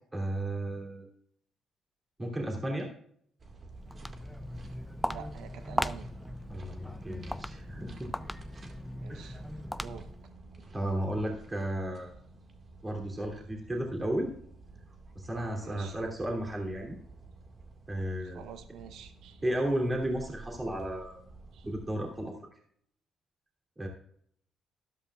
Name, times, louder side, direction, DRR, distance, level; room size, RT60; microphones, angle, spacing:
voice 1, 0.1-1.1 2.2-2.9 6.5-8.1 9.1-9.4 10.7-12.1 12.8-14.3 15.1-16.9 17.9-18.4 19.4-21.2 21.6-22.4 23.8-23.9, right 1 dB, 20° right, 0 dB, 2.9 m, -33 dB
sound 1, 3.4-22.3, right 3 dB, 40° right, 1.8 m, -51 dB
Walk footsteps, 3.7-10.3, equal, 5° left, 0.4 m, -38 dB
voice 2, 5.0-6.1 9.0-9.4 9.7-10.1 15.5-16.0 18.2-19.4 21.5-21.7, right 7 dB, 80° right, 9 dB, 0.9 m, -47 dB
13.0 x 12.0 x 2.4 m, 0.64 s
cardioid pair, 90°, 0 cm